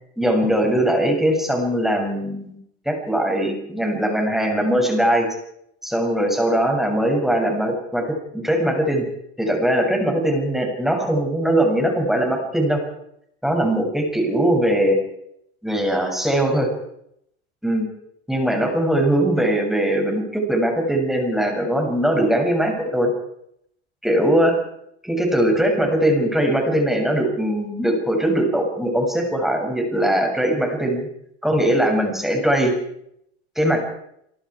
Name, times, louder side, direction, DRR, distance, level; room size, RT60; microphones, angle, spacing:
voice 1, 0.2-2.6 2.9-5.3 5.8-9.1 9.4-12.8 13.4-15.0 15.6-16.7 17.6-17.9 18.3-23.1 24.0-24.5 25.0-31.1 31.4-32.7 33.6-33.8, right 1 dB, ahead, 2 dB, 7.5 m, -20 dB
29.5 x 18.5 x 4.9 m, 0.75 s
hypercardioid pair, 95°, 33 cm